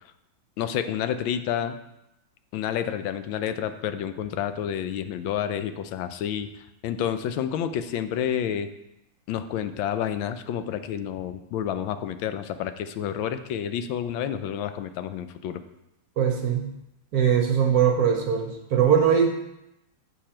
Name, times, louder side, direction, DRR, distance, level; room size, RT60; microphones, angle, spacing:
voice 1, 0.6-1.8 2.5-6.5 6.8-8.7 9.3-15.6, left 9 dB, 85° left, 10 dB, 1.4 m, -29 dB
voice 2, 16.2-16.7 17.1-19.4, right 8 dB, 60° right, 4 dB, 1.1 m, -21 dB
7.6 x 7.0 x 4.3 m, 0.88 s
omnidirectional pair, 2.1 m